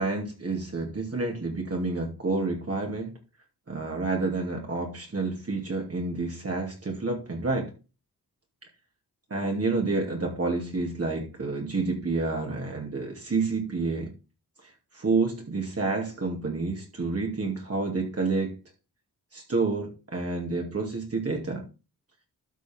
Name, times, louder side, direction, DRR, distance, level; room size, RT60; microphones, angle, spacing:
voice 1, 0.0-3.1 3.7-7.7 9.3-14.1 14.9-18.6 19.3-21.6, right 3 dB, 40° right, 1 dB, 2.6 m, -29 dB
12.5 x 5.3 x 3.6 m, 0.31 s
wide cardioid pair, 100°, 38 cm